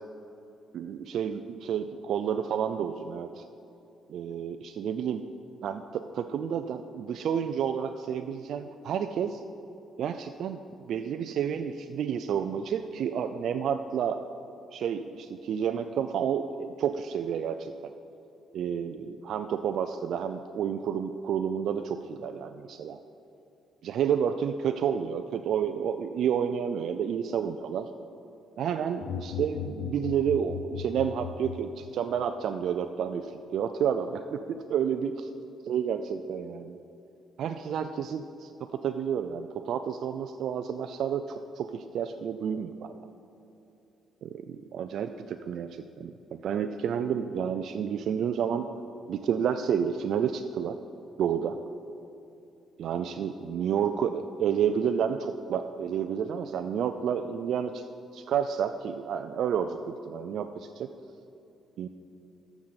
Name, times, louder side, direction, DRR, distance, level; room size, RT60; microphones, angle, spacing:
voice 1, 0.7-3.4 4.1-5.2 5.6-9.4 10.0-10.6 10.9-14.2 14.7-17.9 18.5-23.0 23.8-27.9 28.6-35.1 35.7-36.8 37.4-43.1 44.2-48.7 49.1-50.8 51.2-51.6 52.8-57.8 58.1-60.9 61.8-61.9, right 8 dB, 70° right, 7 dB, 0.3 m, -30 dB
sound 1, 29.0-32.2, left 8 dB, 75° left, 0.3 m, -38 dB
14.0 x 6.0 x 4.0 m, 2.9 s
cardioid pair, 90°, 0 cm